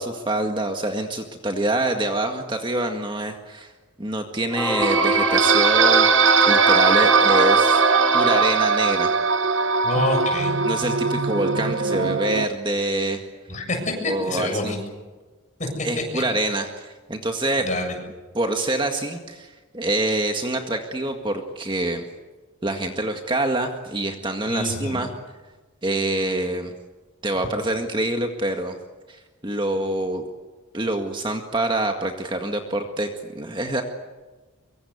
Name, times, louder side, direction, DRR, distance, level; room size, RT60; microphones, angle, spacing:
voice 1, 0.0-3.7 4.0-6.1 6.4-7.8 8.1-9.1 10.6-13.3 14.0-14.7 15.8-17.7 18.3-22.0 22.6-25.1 25.8-26.7 27.2-28.7 29.1-30.2 30.7-33.8, right 2 dB, 20° right, 4 dB, 1.9 m, -26 dB
Singing / Musical instrument, 4.5-9.4, left 2 dB, 5° left, 0.8 m, -26 dB
sound 1, 4.8-12.5, right 5 dB, 60° right, 0.8 m, -19 dB
voice 2, 9.8-10.5 13.5-14.8 15.6-15.9 16.1-16.2 17.6-17.9 24.5-25.0, left 2 dB, 35° left, 3 dB, 7.4 m, -27 dB
25.0 x 24.0 x 8.3 m, 1.3 s
head